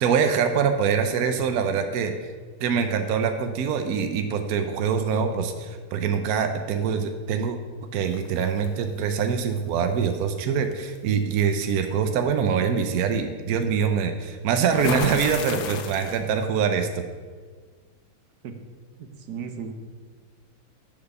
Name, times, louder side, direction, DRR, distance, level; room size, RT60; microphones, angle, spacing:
voice 1, 0.0-2.1 2.6-7.6 7.9-17.0, right 6 dB, 80° right, 6 dB, 0.8 m, -24 dB
sound 1, 8.1-8.7 10.0-10.2 10.7-11.0 14.7-16.4, left 7 dB, 75° left, 1.4 m, -31 dB
voice 2, 19.0-19.7, right 6 dB, 65° right, 6 dB, 1.1 m, -35 dB
8.9 x 4.1 x 6.5 m, 1.5 s
omnidirectional pair, 2.3 m